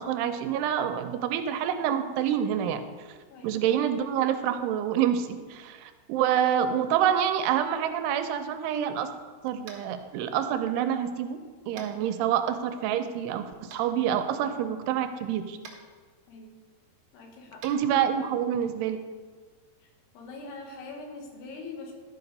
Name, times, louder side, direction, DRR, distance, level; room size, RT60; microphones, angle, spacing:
voice 1, 0.0-2.8 3.4-9.1 9.4-11.4 11.7-15.6 17.6-19.0, right 9 dB, 85° right, 8 dB, 2.7 m, -27 dB
Tap, 9.6-9.9 11.7-11.9 13.7-13.8 15.6-15.8 17.6-17.7, right 5 dB, 60° right, 1.7 m, -45 dB
voice 2, 17.1-17.6 20.1-21.9, left 3 dB, 75° left, 1 dB, 3.5 m, -42 dB
12.0 x 5.8 x 5.4 m, 1.5 s
omnidirectional pair, 4.7 m